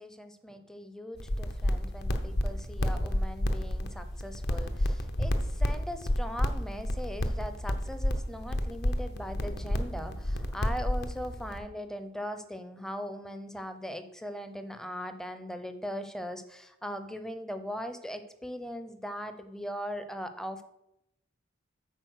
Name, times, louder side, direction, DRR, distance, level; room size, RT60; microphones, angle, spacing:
voice 1, 0.0-20.6, equal, 5° left, 9 dB, 0.5 m, -40 dB
sound 1, 1.2-11.6, left 1 dB, 50° left, 0.8 m, -31 dB
9.0 x 4.2 x 6.4 m, 0.85 s
head